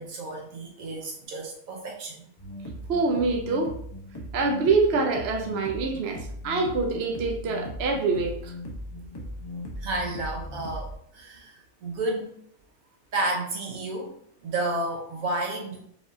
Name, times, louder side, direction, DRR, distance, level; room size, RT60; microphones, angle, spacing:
voice 1, 0.0-2.3 9.8-12.3 13.1-14.1 14.4-15.9, right 2 dB, 80° right, 0 dB, 1.4 m, -31 dB
sound 1, 2.4-11.0, equal, 25° left, 0.7 m, -38 dB
voice 2, 2.9-3.7 4.3-8.5, right 3 dB, 55° right, 2 dB, 0.8 m, -25 dB
4.8 x 3.5 x 2.7 m, 0.66 s
omnidirectional pair, 1.4 m